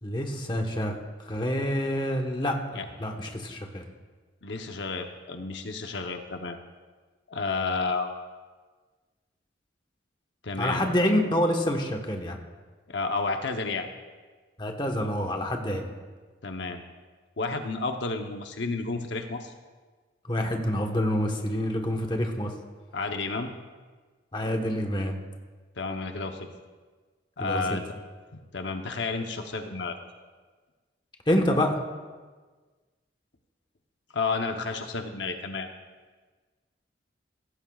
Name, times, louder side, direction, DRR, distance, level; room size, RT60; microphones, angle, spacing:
voice 1, 0.0-1.0 1.2-3.8 10.6-12.4 14.6-15.9 20.3-22.5 24.3-25.1 27.4-27.8 31.3-31.8, equal, 25° left, 2 dB, 1.2 m, -27 dB
voice 2, 4.4-6.6 7.3-8.1 10.4-10.8 12.9-13.9 16.4-16.8 17.4-19.5 22.9-23.5 25.8-26.5 27.4-27.8 28.3-30.0 34.1-35.7, left 3 dB, 80° left, 5 dB, 0.9 m, -31 dB
16.0 x 15.0 x 2.4 m, 1.4 s
head